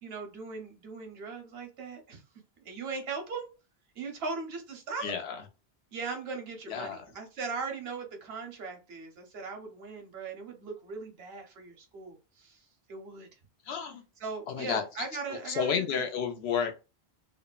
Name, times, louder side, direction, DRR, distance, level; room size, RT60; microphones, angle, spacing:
voice 1, 0.0-2.2 2.6-3.5 3.9-5.1 5.9-13.3 14.2-16.0, right 4 dB, 75° right, 3 dB, 1.0 m, -39 dB
voice 2, 5.0-5.4 6.7-7.0 13.7-14.0 14.5-14.8 15.5-16.8, left 7 dB, 85° left, 5 dB, 0.9 m, -31 dB
3.1 x 2.0 x 2.3 m, 0.29 s
omnidirectional pair, 1.0 m